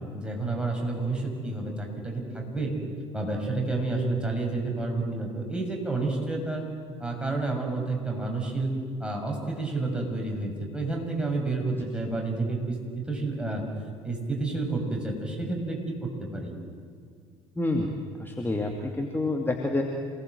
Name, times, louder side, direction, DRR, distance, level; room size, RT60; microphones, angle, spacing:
voice 1, 0.1-2.8 3.1-6.6 7.0-8.7 9.0-13.6 14.0-16.5, right 3 dB, 5° right, 1 dB, 6.4 m, -30 dB
voice 2, 17.6-19.8, left 2 dB, 15° left, 1 dB, 2.5 m, -28 dB
27.5 x 18.5 x 7.8 m, 2.1 s
figure-of-eight pair, 55°, 16 cm